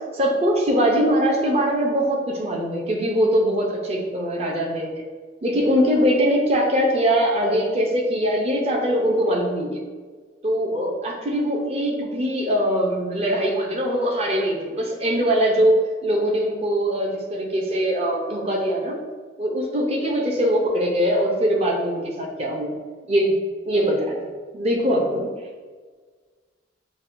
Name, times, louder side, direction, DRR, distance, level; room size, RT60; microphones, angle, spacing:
voice 1, 0.1-5.0 5.4-9.8 10.4-15.7 16.0-19.0 19.4-22.7 23.0-23.4 23.7-24.2 24.5-25.3, equal, 35° right, -1 dB, 0.5 m, -22 dB
5.9 x 2.2 x 2.5 m, 1.5 s
head